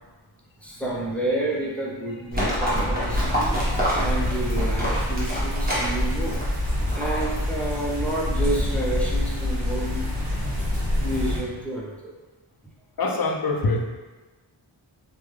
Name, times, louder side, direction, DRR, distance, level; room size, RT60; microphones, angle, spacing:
voice 1, 0.6-6.4 6.9-10.0 11.0-11.9, right 1 dB, 5° left, -4 dB, 0.6 m, -30 dB
Livestock farm animals working animals, 2.3-7.5, equal, 20° right, 1.1 m, -26 dB
sound 1, 3.1-11.4, left 1 dB, 55° right, 1.1 m, -27 dB
voice 2, 13.0-13.8, left 3 dB, 45° left, 2 dB, 0.5 m, -24 dB
3.4 x 2.2 x 3.2 m, 1.2 s
wide cardioid pair, 95°, 50 cm